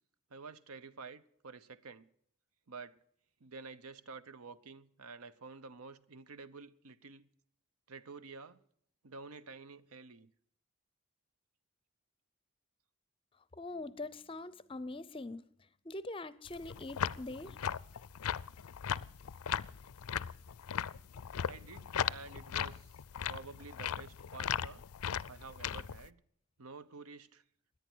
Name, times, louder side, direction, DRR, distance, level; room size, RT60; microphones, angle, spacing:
voice 1, 0.3-2.1 2.7-2.9 3.4-7.3 7.9-8.6 9.0-10.3 21.5-22.9 23.2-24.8 25.3-26.2 26.6-27.4, right 4 dB, 80° right, 0.8 m, -50 dB
voice 2, 13.5-15.4 15.8-17.6, left 2 dB, 25° left, 0.5 m, -43 dB
Marimba xylophone / Wood, 13.7-16.4, equal, 40° right, 6.2 m, -77 dB
sound 1, 16.5-26.1, left 8 dB, 90° left, 0.5 m, -38 dB
17.5 x 10.5 x 6.1 m
head